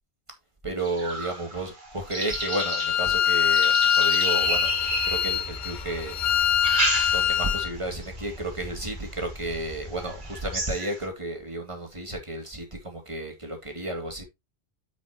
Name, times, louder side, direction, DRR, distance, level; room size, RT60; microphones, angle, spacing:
voice 1, 0.6-4.7 5.0-6.2 7.1-14.2, right 1 dB, 30° right, 2.3 m, -32 dB
sound 1, 0.8-5.8 6.4-7.6 8.0-8.4 9.0-9.1 9.5-9.6 10.0-11.0, right 2 dB, 50° right, 2.0 m, -32 dB
Bowed string instrument, 2.3-7.7, left 9 dB, 55° left, 0.7 m, -24 dB
sound 2, 4.4-10.7, left 1 dB, 20° left, 2.4 m, -42 dB
9.4 x 5.9 x 2.8 m
omnidirectional pair, 1.1 m